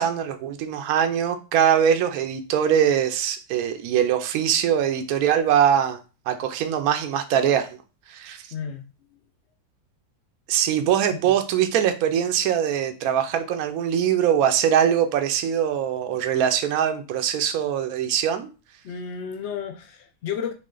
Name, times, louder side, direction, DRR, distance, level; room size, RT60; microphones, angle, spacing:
voice 1, 0.0-6.0 6.3-7.7 8.1-8.4 10.5-18.5, right 9 dB, 70° right, 1.0 m, -22 dB
voice 2, 8.5-8.8 11.1-11.3 18.8-20.5, left 7 dB, 75° left, 0.6 m, -32 dB
4.4 x 3.1 x 3.8 m
omnidirectional pair, 1.7 m